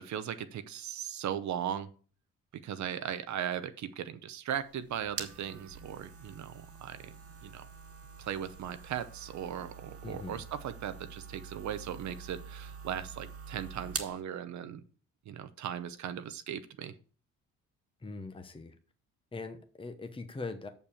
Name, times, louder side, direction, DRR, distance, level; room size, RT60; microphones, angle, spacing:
voice 1, 0.0-1.9 2.6-6.5 6.8-7.1 7.4-7.6 8.2-14.8 15.3-16.9, right 9 dB, 70° right, 10 dB, 0.8 m, -38 dB
sound 1, 4.6-14.2, right 6 dB, 50° right, 1.6 m, -45 dB
voice 2, 10.0-10.4 18.0-18.8 19.3-20.7, left 3 dB, 15° left, 7 dB, 1.0 m, -41 dB
6.7 x 5.4 x 7.1 m, 0.40 s
cardioid pair, 90°, 30 cm